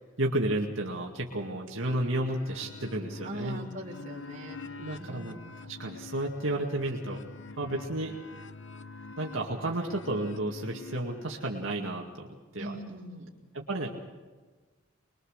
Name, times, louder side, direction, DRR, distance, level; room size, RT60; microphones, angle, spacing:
voice 1, 0.0-3.6 4.7-5.4 5.6-7.2 7.6-8.1 9.2-12.3 12.5-12.7 13.5-13.9, right 1 dB, 70° right, -1 dB, 2.1 m, -32 dB
sound 1, 1.9-11.6, left 4 dB, 60° left, 0.9 m, -46 dB
voice 2, 3.2-4.6 5.0-5.4 12.6-13.3, right 1 dB, 35° right, -3 dB, 3.6 m, -40 dB
25.5 x 22.0 x 6.6 m, 1.4 s
head